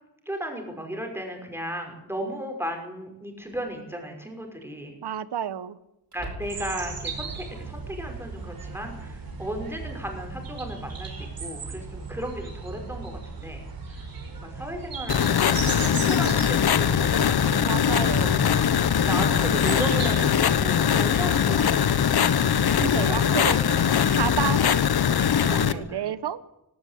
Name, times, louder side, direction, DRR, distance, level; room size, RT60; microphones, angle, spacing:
voice 1, 0.3-5.0 6.1-18.4 19.1-22.0 22.5-23.2 23.6-24.1 25.4-26.0, equal, 5° right, 3 dB, 5.7 m, -35 dB
sound 1, 1.5-1.6 3.4-3.8 4.2-4.3 6.0-6.9, right 1 dB, 45° right, 6.5 m, -41 dB
voice 2, 5.0-5.8 17.6-18.4 22.8-23.6 24.1-24.8 25.4-26.4, right 9 dB, 90° right, 15 dB, 1.2 m, -30 dB
sound 2, 6.4-20.5, right 4 dB, 60° right, 5.2 m, -37 dB
sound 3, 15.1-25.7, left 8 dB, 70° left, 1.2 m, -21 dB
18.0 x 17.5 x 8.5 m, 0.89 s
wide cardioid pair, 140°, 39 cm